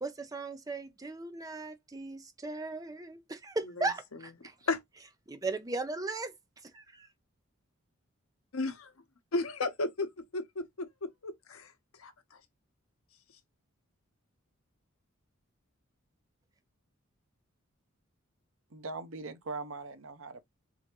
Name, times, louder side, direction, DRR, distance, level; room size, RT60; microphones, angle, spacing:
voice 1, 0.0-4.5 5.3-6.3 6.7-7.1, right 3 dB, 15° right, 0.6 m, -37 dB
voice 2, 3.8-4.3 4.7-4.8 8.5-8.9 9.3-11.7 12.0-12.4, left 3 dB, 85° left, 0.8 m, -35 dB
voice 3, 18.7-20.4, right 3 dB, 75° right, 0.8 m, -40 dB
3.9 x 3.3 x 2.9 m
head